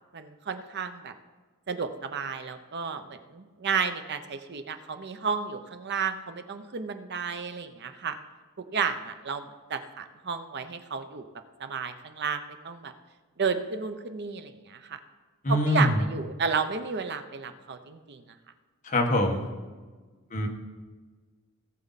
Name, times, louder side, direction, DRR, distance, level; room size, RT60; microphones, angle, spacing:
voice 1, 0.1-1.1 1.7-8.2 8.7-9.4 9.7-11.3 11.6-12.9 13.4-15.0 15.5-18.2, right 5 dB, 50° right, 9 dB, 0.7 m, -32 dB
voice 2, 15.4-16.0 18.8-19.5 20.3-20.5, left 1 dB, 35° left, 1 dB, 1.5 m, -24 dB
17.5 x 7.0 x 4.1 m, 1.3 s
head